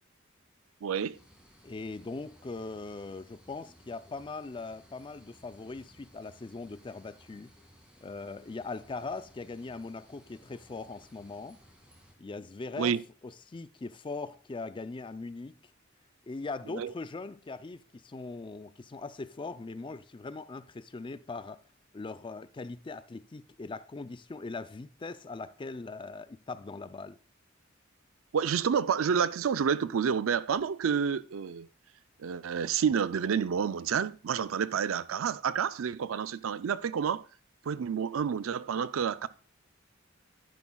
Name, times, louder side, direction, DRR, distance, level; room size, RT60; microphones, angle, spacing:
voice 1, 0.8-1.2 12.8-13.0 16.7-16.9 28.3-31.7 32.2-37.3 37.7-39.3, right 7 dB, 90° right, 0.4 m, -29 dB
sound 1, 1.1-12.1, equal, 5° right, 2.2 m, -59 dB
voice 2, 1.6-7.5 8.0-11.6 12.2-13.0 13.2-15.6 16.3-21.6 21.9-27.2, left 3 dB, 25° left, 0.4 m, -40 dB
11.0 x 10.0 x 2.3 m
head